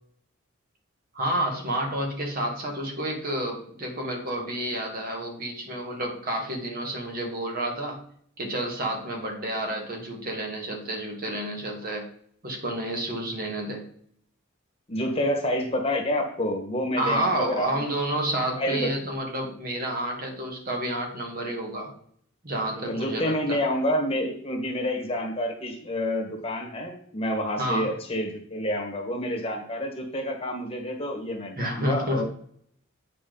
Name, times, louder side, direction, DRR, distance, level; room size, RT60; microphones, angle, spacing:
voice 1, 1.1-8.0 8.4-12.0 12.4-13.8 16.9-21.9 22.4-23.6 27.6-27.9 31.6-32.2, right 1 dB, 45° right, 2 dB, 1.6 m, -30 dB
voice 2, 14.9-17.7 18.6-18.9 22.8-32.2, left 1 dB, 30° left, 1 dB, 1.4 m, -28 dB
8.5 x 5.0 x 3.8 m, 0.64 s
head